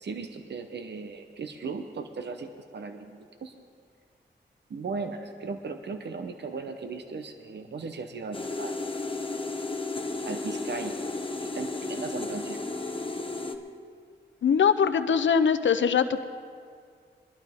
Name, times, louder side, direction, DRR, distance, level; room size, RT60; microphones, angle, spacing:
voice 1, 0.0-3.5 4.7-8.9 10.2-10.9 11.4-12.6, right 4 dB, 65° right, 7 dB, 0.9 m, -37 dB
sound 1, 8.3-13.6, left 3 dB, 30° left, 1.0 m, -33 dB
voice 2, 14.4-16.2, left 7 dB, 80° left, 11 dB, 0.7 m, -22 dB
21.5 x 12.0 x 3.6 m, 2.1 s
cardioid pair, 70°, 19 cm